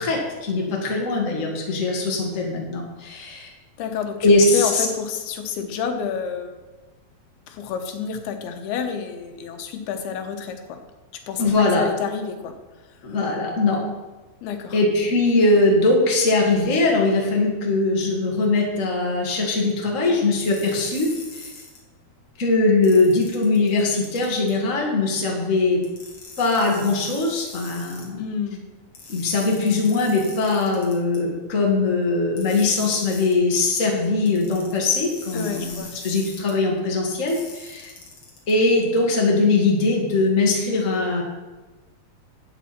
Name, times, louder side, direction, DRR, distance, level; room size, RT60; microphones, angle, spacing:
voice 1, 0.0-3.5 4.2-4.9 11.4-11.8 13.0-13.8 14.7-21.5 22.4-25.8 26.4-28.3 29.1-37.9 38.5-41.2, left 3 dB, 25° left, -1 dB, 1.8 m, -21 dB
voice 2, 3.8-4.2 4.5-6.6 7.5-10.8 11.3-12.5 14.4-14.8 28.2-28.6 35.3-35.9, left 6 dB, 90° left, 6 dB, 3.0 m, -29 dB
sound 1, 20.4-21.8 22.8-24.5 25.8-28.1 28.9-31.2 32.4-33.4 34.3-36.5 37.3-38.5, left 4 dB, 45° left, 2.8 m, -42 dB
13.0 x 8.4 x 4.4 m, 1.2 s
omnidirectional pair, 4.4 m